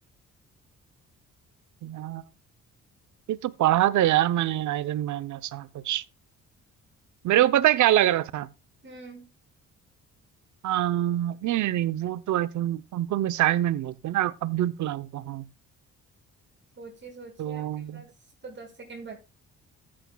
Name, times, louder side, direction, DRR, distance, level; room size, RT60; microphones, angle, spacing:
voice 1, 1.8-2.2 3.3-6.0 7.2-8.5 10.6-15.4 17.4-18.0, right 13 dB, 75° right, 0.8 m, -25 dB
voice 2, 8.8-9.3 16.8-17.6 17.9-18.1 18.4-19.2, right 3 dB, 40° right, 5.2 m, -43 dB
14.0 x 8.8 x 2.3 m
cardioid pair, 90°, 30 cm